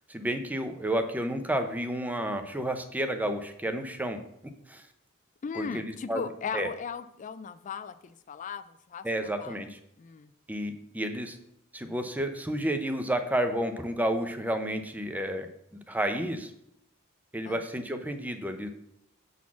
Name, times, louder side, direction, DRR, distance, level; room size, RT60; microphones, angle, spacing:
voice 1, 0.0-4.2 4.7-4.8 5.5-6.2 6.5-6.7 9.0-9.8 10.5-11.4 11.7-15.5 15.9-16.5 17.3-18.7, right 1 dB, 10° right, 7 dB, 0.6 m, -31 dB
voice 2, 5.4-9.6 10.0-10.3 17.4-17.6, left 6 dB, 35° left, 12 dB, 0.3 m, -38 dB
7.1 x 4.1 x 6.1 m, 0.77 s
head